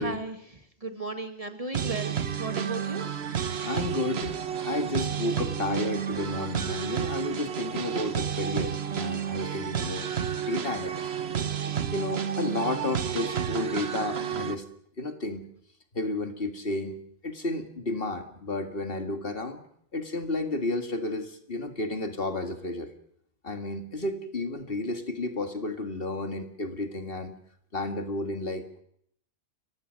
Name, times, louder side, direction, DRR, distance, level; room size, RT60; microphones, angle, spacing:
voice 1, 0.0-3.1, right 3 dB, 30° right, 7 dB, 1.9 m, -36 dB
sound 1, 1.7-14.5, right 8 dB, 65° right, 1.3 m, -31 dB
voice 2, 3.3-10.1 10.4-11.0 11.9-14.6 15.0-15.4 15.9-17.0 17.2-19.6 19.9-22.9 23.4-27.3 27.7-28.6, left 2 dB, 55° left, 6 dB, 2.2 m, -32 dB
29.5 x 15.5 x 6.5 m, 0.68 s
omnidirectional pair, 1.2 m